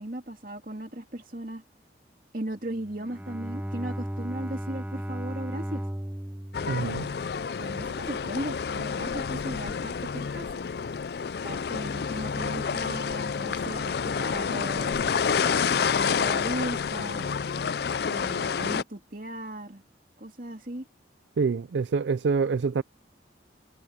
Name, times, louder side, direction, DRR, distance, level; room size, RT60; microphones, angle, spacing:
voice 1, 0.0-1.6 2.3-5.8 7.6-10.5 11.4-15.1 15.4-17.3 18.1-19.8 20.2-20.9, right 1 dB, 45° right, 3.0 m, -37 dB
Bowed string instrument, 2.7-8.0, right 1 dB, 10° right, 0.8 m, -36 dB
sound 1, 6.5-18.8, left 6 dB, 60° left, 0.4 m, -29 dB
voice 2, 6.7-7.1 21.4-22.8, right 5 dB, 75° right, 0.4 m, -26 dB
head